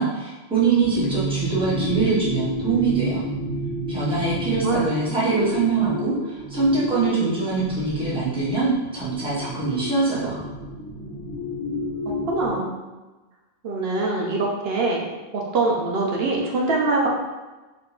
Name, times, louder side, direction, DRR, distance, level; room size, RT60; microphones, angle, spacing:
voice 1, 0.0-3.2 3.9-10.4, right 4 dB, 5° right, -9 dB, 0.8 m, -23 dB
sound 1, 0.8-12.5, equal, 20° left, 1.2 m, -31 dB
voice 2, 12.1-12.8 13.6-15.1 15.3-17.1, right 3 dB, 70° right, -2 dB, 0.8 m, -23 dB
3.6 x 2.8 x 2.3 m, 1.2 s
omnidirectional pair, 1.1 m